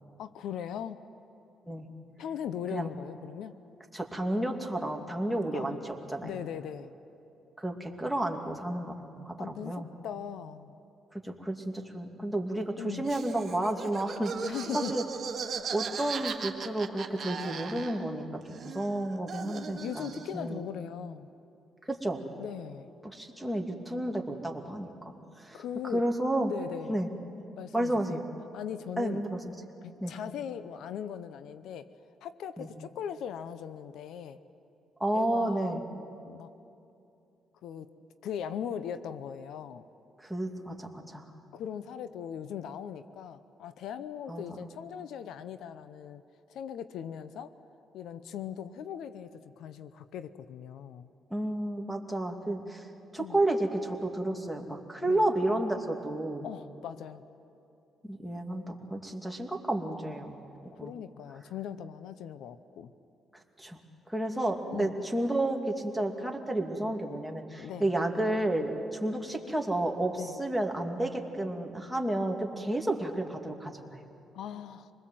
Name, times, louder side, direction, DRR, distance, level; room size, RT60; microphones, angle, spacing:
voice 1, 0.2-1.1 2.2-3.6 5.3-5.8 6.2-6.9 9.4-10.7 12.8-13.1 14.4-15.0 19.8-21.3 22.4-22.9 25.5-26.0 26.5-27.0 27.5-28.2 28.5-29.2 29.8-31.9 32.2-34.4 35.1-35.8 36.2-36.5 37.6-37.9 38.2-39.8 41.5-46.2 46.5-47.5 47.9-51.1 53.2-53.4 55.1-55.3 56.4-57.2 60.8-62.9 64.7-64.9 67.6-67.9 70.2-70.3 74.3-74.9, left 9 dB, 80° left, 12 dB, 0.7 m, -39 dB
voice 2, 3.9-6.4 7.6-9.9 11.1-14.3 14.7-15.0 15.7-20.6 21.9-22.2 23.0-25.6 25.9-26.5 26.9-27.1 27.7-28.2 29.0-29.4 30.0-30.1 32.6-32.7 35.0-35.8 40.2-41.3 44.3-44.4 51.3-52.9 53.1-56.5 58.1-60.4 60.8-60.9 63.3-63.8 64.1-74.0, right 1 dB, ahead, 1 dB, 2.5 m, -31 dB
Laughter, 13.0-18.2 18.5-20.4, right 6 dB, 50° right, 1.9 m, -38 dB
26.5 x 20.5 x 7.7 m, 2.7 s
cardioid pair, 90°, 0 cm